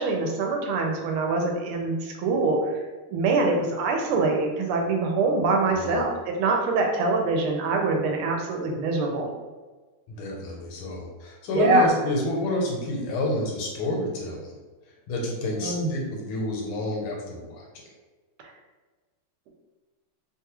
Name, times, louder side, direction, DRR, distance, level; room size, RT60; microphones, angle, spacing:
voice 1, 0.0-2.6 3.1-9.3 11.5-11.9 15.6-15.9, right 3 dB, 85° right, 2 dB, 1.5 m, -24 dB
voice 2, 10.1-14.5 15.1-17.8, left 1 dB, 75° left, -2 dB, 1.5 m, -29 dB
3.4 x 2.3 x 2.9 m, 1.3 s
omnidirectional pair, 2.3 m